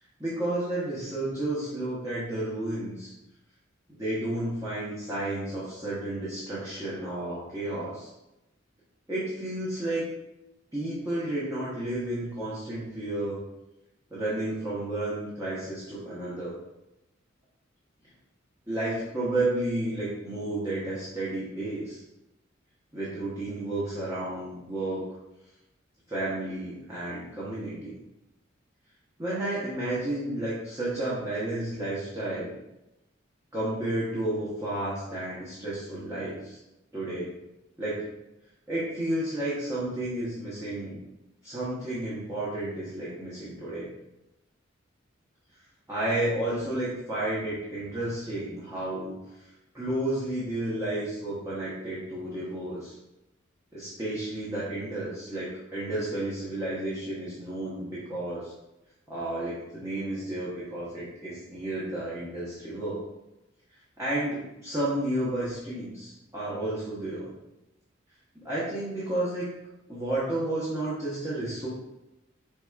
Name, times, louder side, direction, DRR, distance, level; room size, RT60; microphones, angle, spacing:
voice 1, 0.2-3.1 4.0-8.1 9.1-10.0 10.7-13.4 14.1-16.6 18.7-22.0 22.9-25.0 26.1-27.9 29.2-32.5 33.5-36.6 36.9-37.3 37.8-38.1 38.7-41.0 41.4-43.9 45.9-49.2 49.7-52.9 53.7-58.5 59.1-63.0 64.0-67.3 68.3-69.4 69.9-71.7, right 1 dB, 15° right, -9 dB, 0.9 m, -32 dB
4.7 x 3.4 x 2.3 m, 0.94 s
head